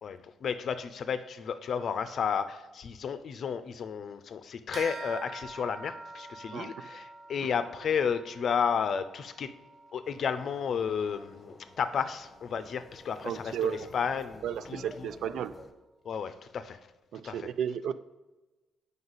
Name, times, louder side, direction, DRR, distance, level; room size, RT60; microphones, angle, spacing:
voice 1, 0.0-9.5 9.9-15.1 16.0-16.8 17.2-17.5, left 7 dB, 60° left, 12 dB, 0.5 m, -32 dB
sound 1, 4.7-14.5, right 3 dB, 50° right, 0.8 m, -48 dB
sound 2, 10.0-15.7, left 2 dB, 20° left, 0.8 m, -51 dB
voice 2, 13.2-13.9 14.4-15.5 17.1-17.9, right 9 dB, 75° right, 14 dB, 0.3 m, -33 dB
7.9 x 5.3 x 4.0 m, 1.1 s
cardioid pair, 90°, 0 cm